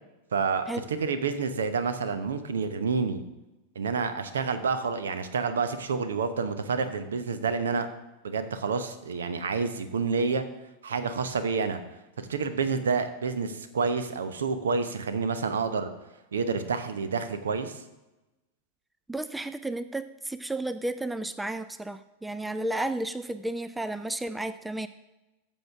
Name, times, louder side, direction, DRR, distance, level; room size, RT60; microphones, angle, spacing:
voice 1, 0.3-3.2 3.7-7.9 8.2-10.4 10.8-11.8 12.2-15.9 16.3-17.8, right 5 dB, 65° right, 10 dB, 0.8 m, -29 dB
voice 2, 19.1-24.9, right 2 dB, 5° right, 12 dB, 0.4 m, -32 dB
13.0 x 7.2 x 3.6 m, 1.0 s
figure-of-eight pair, 90°, 0 cm